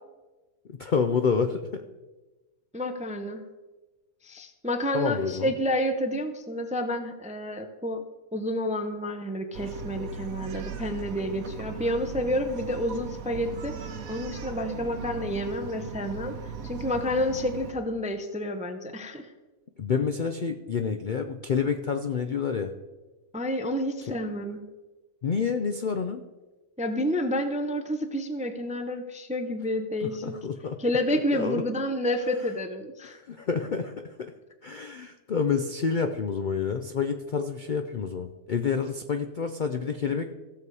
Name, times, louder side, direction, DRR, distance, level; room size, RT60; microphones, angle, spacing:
voice 1, 0.7-1.8 4.9-5.5 19.8-22.7 25.2-26.2 30.0-30.8 31.3-31.6 33.3-33.9 34.2-34.3 34.6-40.3, left 6 dB, 55° left, 7 dB, 0.5 m, -28 dB
voice 2, 2.7-3.4 4.2-8.0 8.3-13.8 14.1-16.4 16.6-19.3 23.3-24.6 26.8-30.3 30.8-33.2, left 1 dB, 10° right, 7 dB, 0.4 m, -29 dB
Bark, 9.5-17.7, right 5 dB, 75° right, 1.3 m, -38 dB
16.0 x 7.0 x 4.8 m, 1.2 s
omnidirectional pair, 1.5 m